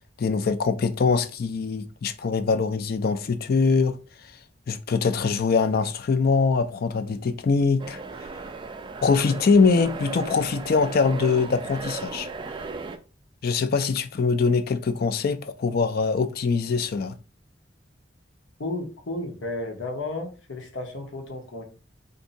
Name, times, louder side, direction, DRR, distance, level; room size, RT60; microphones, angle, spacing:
voice 1, 0.2-4.0 4.7-8.0 9.0-12.3 13.4-17.1, left 4 dB, 55° left, 0.4 m, -23 dB
sound 1, 7.8-13.0, right 3 dB, 25° right, 0.3 m, -36 dB
voice 2, 18.6-21.6, left 2 dB, 85° left, 1.0 m, -33 dB
2.7 x 2.6 x 4.0 m
head